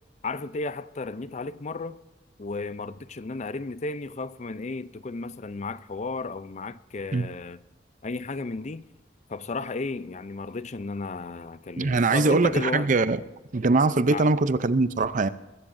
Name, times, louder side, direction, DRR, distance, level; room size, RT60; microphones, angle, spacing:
voice 1, 0.2-2.0 2.4-7.6 8.0-8.9 9.3-12.9 14.0-14.3, left 3 dB, 40° left, 0.5 m, -33 dB
voice 2, 11.8-13.2 13.5-15.3, right 3 dB, 45° right, 0.6 m, -22 dB
20.5 x 16.0 x 2.6 m
head